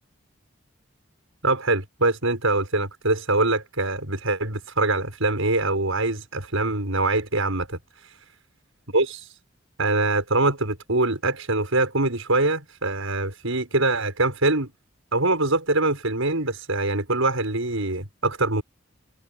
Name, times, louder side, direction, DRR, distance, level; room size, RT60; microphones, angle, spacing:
voice 1, 1.4-8.2 8.9-9.4 9.8-14.7 15.1-18.6, right 2 dB, 85° right, 6.6 m, -24 dB
head